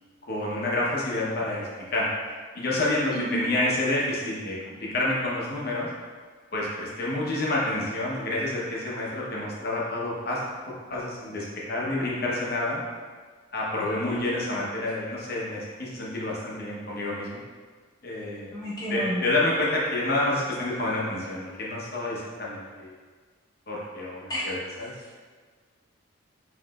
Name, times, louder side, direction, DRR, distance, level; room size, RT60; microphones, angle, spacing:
voice 1, 0.3-2.1 2.5-5.9 6.5-10.4 10.7-12.8 13.5-17.4 18.0-18.5 18.9-22.9 23.7-24.9, left 2 dB, 50° left, -5 dB, 0.8 m, -28 dB
voice 2, 3.1-3.5 13.8-14.2 18.5-19.2 24.3-24.5, equal, 20° left, -7 dB, 0.8 m, -31 dB
4.9 x 3.1 x 2.3 m, 1.5 s
head